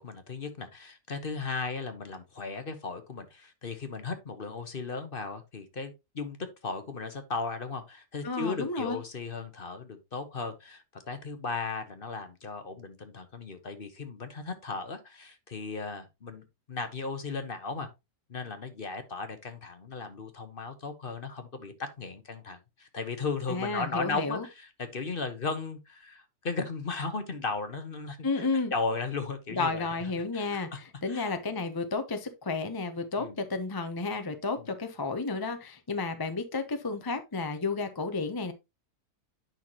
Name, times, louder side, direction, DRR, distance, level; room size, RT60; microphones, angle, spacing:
voice 1, 0.0-17.9 18.3-29.9 30.3-30.8 31.1-31.3 33.2-33.4 34.6-34.7, left 4 dB, 40° left, 1.1 m, -36 dB
voice 2, 8.2-9.0 23.5-24.4 28.2-28.7 29.6-38.5, left 3 dB, 20° left, 0.6 m, -32 dB
9.3 x 5.8 x 2.9 m
omnidirectional pair, 1.6 m